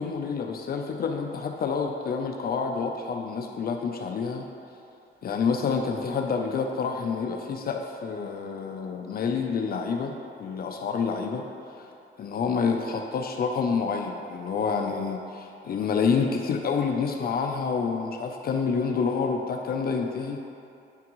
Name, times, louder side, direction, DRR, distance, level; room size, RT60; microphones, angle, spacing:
voice 1, 0.0-4.5 5.2-11.4 12.2-20.4, left 5 dB, 50° left, 3 dB, 0.5 m, -28 dB
9.5 x 3.5 x 3.0 m, 2.6 s
cardioid pair, 90°, 20 cm